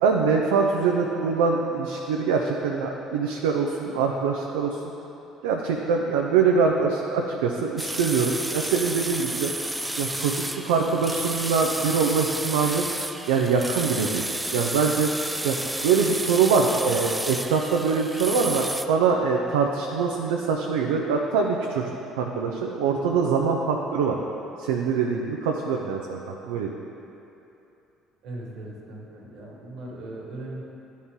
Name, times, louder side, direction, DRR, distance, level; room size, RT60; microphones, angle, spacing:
voice 1, 0.0-4.8 5.4-9.7 10.0-13.0 13.3-14.3 14.5-15.6 15.8-21.9 22.2-24.2 24.6-26.7, right 5 dB, 85° right, 0 dB, 0.4 m, -24 dB
sound 1, 7.8-18.9, right 1 dB, 10° right, 0.4 m, -31 dB
voice 2, 28.2-30.6, right 2 dB, 70° right, -3 dB, 1.6 m, -38 dB
11.5 x 4.2 x 3.6 m, 2.9 s
hypercardioid pair, 70°, 0 cm